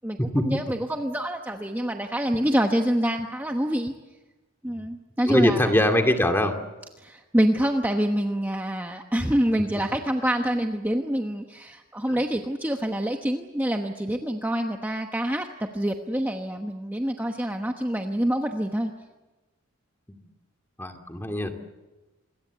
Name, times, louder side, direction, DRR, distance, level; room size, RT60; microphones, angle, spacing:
voice 1, 0.4-3.9 4.6-5.6 7.0-18.9, equal, 10° right, 3 dB, 1.1 m, -26 dB
voice 2, 5.3-6.6 12.1-12.2 20.8-21.5, left 1 dB, 10° left, 4 dB, 2.3 m, -22 dB
27.5 x 22.0 x 8.1 m, 1.1 s
head